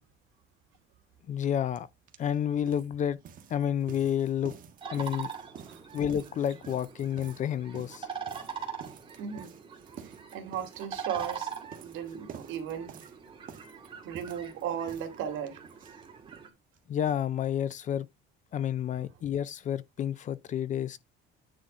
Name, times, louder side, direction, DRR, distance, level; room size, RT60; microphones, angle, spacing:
voice 1, 1.3-1.9 2.2-3.2 3.5-4.5 4.9-5.3 5.9-8.1 16.9-18.1 18.5-21.0, left 9 dB, 35° left, 0.5 m, -30 dB
sound 1, 1.8-1.9 2.1-16.5 16.7-16.8 17.1-17.2 17.4-17.5, right 7 dB, 40° right, 1.4 m, -50 dB
sound 2, 4.8-16.5, right 6 dB, 25° right, 1.9 m, -42 dB
voice 2, 9.2-9.5 10.0-12.9 14.0-15.6, right 8 dB, 70° right, 2.5 m, -36 dB
9.6 x 4.1 x 4.9 m
cardioid pair, 170°, 21 cm